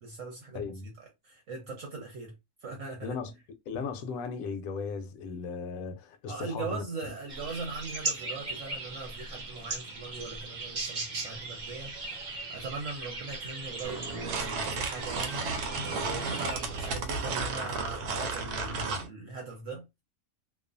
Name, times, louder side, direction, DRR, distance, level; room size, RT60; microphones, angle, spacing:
voice 1, 0.0-2.3 2.6-3.2 6.3-19.9, right 3 dB, 65° right, 1.0 m, -40 dB
voice 2, 0.5-0.9 3.0-3.3 3.7-6.8, left 5 dB, 70° left, 0.9 m, -36 dB
sound 1, 7.3-17.0, right 3 dB, 45° right, 0.6 m, -38 dB
sound 2, 13.8-19.1, right 4 dB, 85° right, 1.1 m, -33 dB
2.4 x 2.4 x 2.5 m
omnidirectional pair, 1.6 m